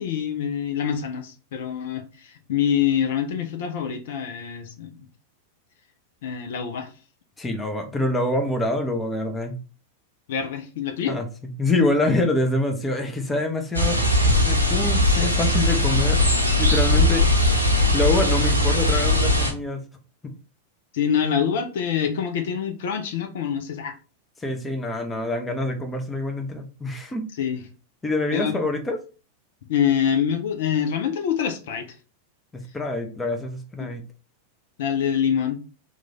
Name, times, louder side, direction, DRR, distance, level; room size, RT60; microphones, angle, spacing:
voice 1, 0.0-5.1 6.2-6.9 10.3-11.2 20.9-23.9 27.4-27.6 28.3-28.5 29.7-31.9 33.8-33.9 34.8-35.6, left 8 dB, 55° left, 0.5 m, -25 dB
voice 2, 7.4-9.6 11.1-11.3 11.6-16.2 16.6-17.6 17.9-19.8 20.2-20.3 24.4-27.3 28.0-29.0 32.5-34.0, left 2 dB, 10° left, 0.6 m, -26 dB
sound 1, 13.7-19.5, left 1 dB, 90° right, 0.7 m, -19 dB
3.1 x 2.3 x 3.7 m
figure-of-eight pair, 90°, 0 cm